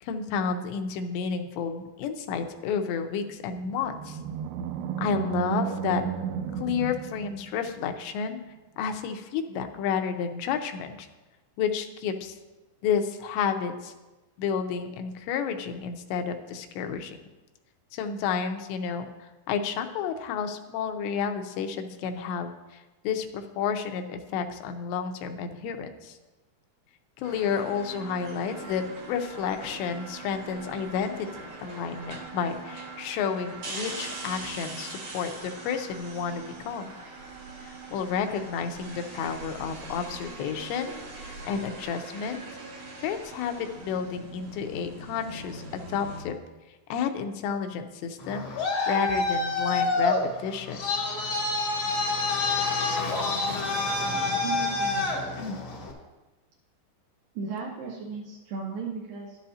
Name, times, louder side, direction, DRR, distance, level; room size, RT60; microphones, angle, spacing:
voice 1, 0.0-4.2 5.0-6.0 6.5-8.4 8.8-11.1 11.6-12.4 12.8-13.9 14.4-17.2 17.9-19.1 19.5-26.2 27.2-28.8 29.1-36.9 37.6-40.9 41.2-42.4 43.0-46.4 46.9-48.5 48.9-50.9 55.4-55.6, left 6 dB, 85° left, 6 dB, 2.9 m, -31 dB
Animal, 3.3-7.9, right 8 dB, 90° right, 2.2 m, -33 dB
sound 1, 27.2-46.2, right 3 dB, 55° right, 2.0 m, -41 dB
Traffic noise roadway noise, 48.2-55.9, left 3 dB, 55° left, 1.4 m, -27 dB
voice 2, 54.4-55.1 57.4-59.4, right 5 dB, 75° right, -2 dB, 2.2 m, -35 dB
12.0 x 11.5 x 2.8 m, 1.1 s
omnidirectional pair, 5.0 m